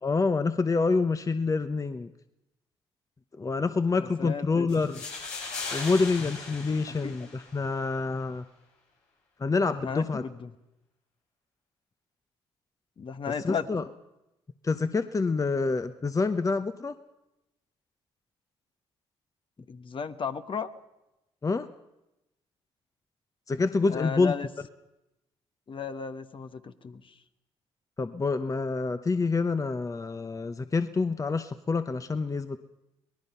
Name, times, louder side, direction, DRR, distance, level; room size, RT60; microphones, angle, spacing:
voice 1, 0.0-2.1 3.4-5.0 5.7-8.4 9.4-10.2 13.4-13.8 14.6-16.9 21.4-21.7 23.5-24.3 28.0-32.6, left 4 dB, 30° left, 10 dB, 0.9 m, -27 dB
voice 2, 4.0-4.7 6.9-7.2 9.8-10.5 13.0-13.7 19.7-20.7 23.9-24.5 25.7-27.0, left 6 dB, 50° left, 10 dB, 1.2 m, -34 dB
sound 1, 4.7-7.7, left 3 dB, 80° left, 6.7 m, -38 dB
24.5 x 18.5 x 5.7 m, 0.93 s
supercardioid pair, 65°, 11 cm